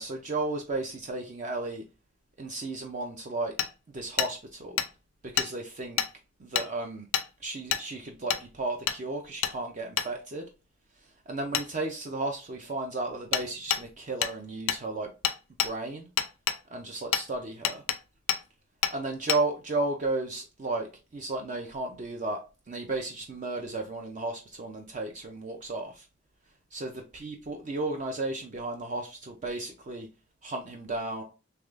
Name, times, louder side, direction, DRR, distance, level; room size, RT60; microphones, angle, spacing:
voice 1, 0.0-1.8 2.4-3.5 3.9-4.8 5.2-6.0 6.4-7.1 7.4-10.5 11.3-15.1 15.6-16.1 16.7-17.8 18.9-20.9 21.1-22.4 22.7-26.1 26.7-30.1 30.4-31.2, right 2 dB, 35° right, 0.4 m, -34 dB
Hammer, 3.6-3.7 4.2-4.3 4.8-4.9 5.4-5.5 6.0-6.1 6.6-6.7 7.1-7.3 7.7-7.8 8.3-8.4 8.9-9.0 9.4-9.6 10.0-10.1 11.5-11.7 13.3-13.5 13.7-13.8 14.2-14.3 14.7-14.8 15.2-15.7 16.2-16.6 17.1-17.3 17.6-18.0 18.3-18.4 18.8-19.0 19.3-19.4, left 10 dB, 80° left, 0.4 m, -27 dB
3.4 x 3.2 x 2.4 m
head